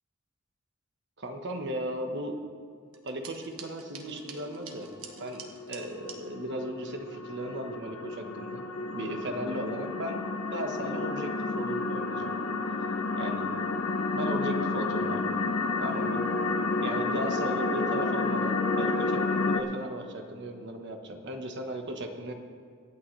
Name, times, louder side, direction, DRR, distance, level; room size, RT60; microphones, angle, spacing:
voice 1, 1.2-2.4 3.0-4.9 5.2-8.6 8.9-10.2 10.5-12.3 13.1-13.5 14.1-15.3 15.8-16.2 16.8-22.3, right 1 dB, 55° right, 4 dB, 1.3 m, -36 dB
sound 1, 2.9-6.2, right 6 dB, 85° right, 1.3 m, -47 dB
sound 2, 4.3-19.6, left 3 dB, 75° left, 1.0 m, -30 dB
24.5 x 8.6 x 3.3 m, 2.2 s
head